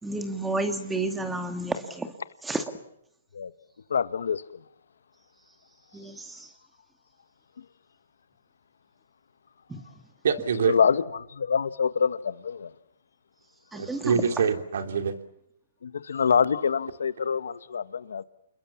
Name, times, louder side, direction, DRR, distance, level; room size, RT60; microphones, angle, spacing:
voice 1, 0.0-2.1 2.4-2.7 5.9-6.5 9.7-9.8 13.7-14.3, right 2 dB, 5° right, 2.3 m, -31 dB
voice 2, 3.9-4.4 10.6-11.0 11.3-12.7 15.8-18.2, left 6 dB, 80° left, 1.4 m, -25 dB
voice 3, 10.2-10.7 13.7-15.2, right 6 dB, 65° right, 3.1 m, -25 dB
29.0 x 21.5 x 7.2 m
hypercardioid pair, 150°, 0 cm